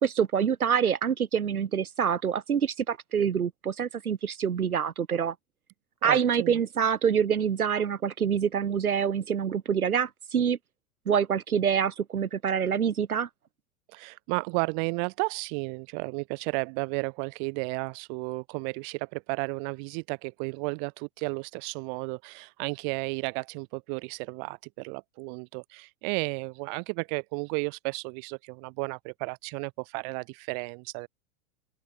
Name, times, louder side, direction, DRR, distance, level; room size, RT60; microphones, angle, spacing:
voice 1, 0.0-5.3 6.0-10.6 11.1-13.3, right 7 dB, 85° right, 1.1 m, -26 dB
voice 2, 6.0-6.6 13.9-31.1, right 38 dB, 35° right, 0.6 m, -33 dB
open air
figure-of-eight pair, 95°, 43 cm